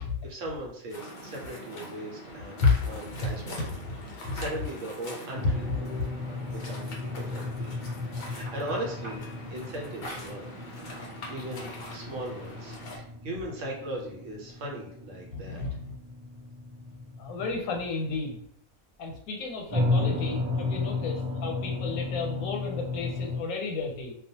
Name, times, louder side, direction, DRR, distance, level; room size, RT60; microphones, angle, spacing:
voice 1, 0.0-3.6 4.1-7.7 8.2-9.2 9.5-10.5 11.0-15.6, right 1 dB, 65° right, -2 dB, 1.0 m, -39 dB
Waves surf, 0.9-13.0, left 1 dB, 60° left, 0.5 m, -43 dB
voice 2, 3.2-4.4 5.4-5.5 15.3-16.0 17.2-18.4 19.0-24.2, left 4 dB, 90° left, 1 dB, 1.1 m, -31 dB
sound 1, 5.3-18.1 19.7-23.4, left 3 dB, 40° right, 0.4 m, -34 dB
2.3 x 2.2 x 2.7 m, 0.66 s
omnidirectional pair, 1.5 m